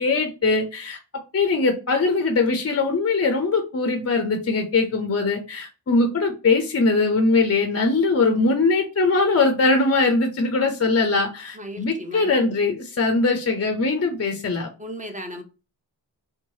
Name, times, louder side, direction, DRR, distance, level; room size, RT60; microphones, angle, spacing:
voice 1, 0.0-14.7, left 3 dB, 35° left, 0.5 m, -21 dB
voice 2, 11.5-12.5 14.8-15.4, equal, 20° right, 0.6 m, -36 dB
3.0 x 2.2 x 2.7 m
wide cardioid pair, 65°, 43 cm